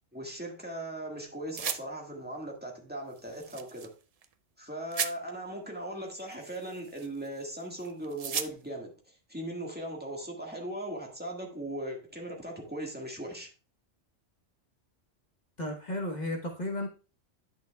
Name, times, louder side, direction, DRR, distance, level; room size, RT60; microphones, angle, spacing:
voice 1, 0.1-3.9 4.6-8.9 9.3-13.5, right 1 dB, 10° right, 1.6 m, -39 dB
sound 1, 1.5-1.8 3.2-3.9 4.2-4.3 4.9-5.1 6.2-7.4 7.8-8.5, right 7 dB, 75° right, 0.3 m, -35 dB
voice 2, 15.6-16.9, left 1 dB, 40° left, 1.1 m, -33 dB
10.0 x 6.0 x 2.2 m
omnidirectional pair, 1.3 m